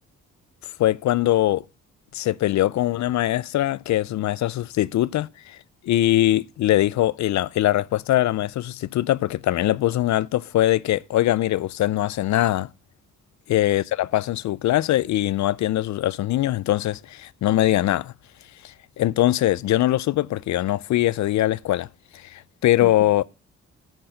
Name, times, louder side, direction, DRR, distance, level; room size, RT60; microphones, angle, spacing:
voice 1, 0.8-1.6 2.1-5.6 5.8-12.7 13.5-18.1 18.6-21.9 22.1-23.2, left 14 dB, 70° left, 0.5 m, -22 dB
8.0 x 6.4 x 7.6 m
cardioid pair, 80°, 30 cm